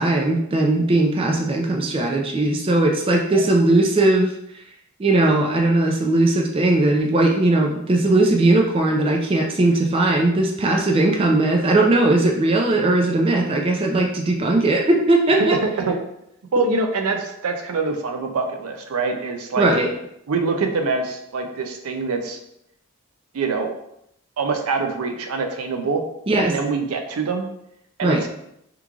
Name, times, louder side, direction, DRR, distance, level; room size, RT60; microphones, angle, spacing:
voice 1, 0.0-4.3 5.0-15.6 19.6-19.9 26.3-26.5 28.0-28.2, right 2 dB, 25° right, 1 dB, 0.3 m, -18 dB
voice 2, 15.4-16.0 16.5-19.7 20.3-22.4 23.3-23.7 24.4-26.0 26.4-27.5 28.0-28.3, right 4 dB, 80° right, 5 dB, 0.5 m, -24 dB
3.0 x 2.4 x 3.6 m, 0.78 s
head